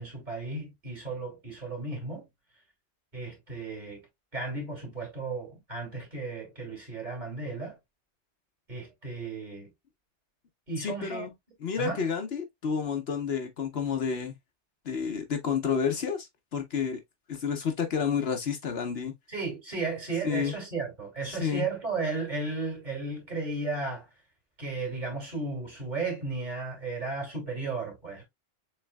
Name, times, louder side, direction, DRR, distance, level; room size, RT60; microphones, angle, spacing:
voice 1, 0.0-2.3 3.1-4.1 4.3-7.8 8.7-9.7 10.7-11.3 11.8-12.0 19.3-24.1 24.6-28.2, right 3 dB, 40° right, 2.6 m, -34 dB
voice 2, 10.8-11.3 11.6-14.4 14.9-16.3 16.5-17.0 17.3-19.1 20.2-20.5 21.3-21.7, left 6 dB, 65° left, 1.0 m, -30 dB
6.6 x 3.2 x 2.2 m
omnidirectional pair, 1.2 m